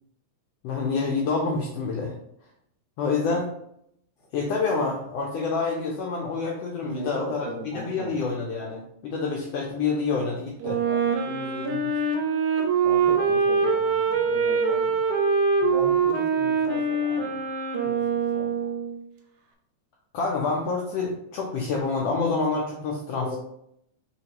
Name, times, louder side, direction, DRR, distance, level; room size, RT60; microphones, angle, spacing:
voice 1, 0.6-2.1 3.0-3.5 4.3-7.5 7.7-10.8 20.1-23.4, left 4 dB, 80° left, -2 dB, 1.4 m, -27 dB
voice 2, 6.8-8.2 10.6-12.2 12.8-15.0 15.6-17.4 17.8-18.7 23.1-23.4, equal, 60° left, -5 dB, 1.1 m, -38 dB
Wind instrument woodwind instrument, 10.6-19.0, right 5 dB, 90° right, 2.1 m, -24 dB
5.1 x 3.0 x 2.9 m, 0.74 s
omnidirectional pair, 3.4 m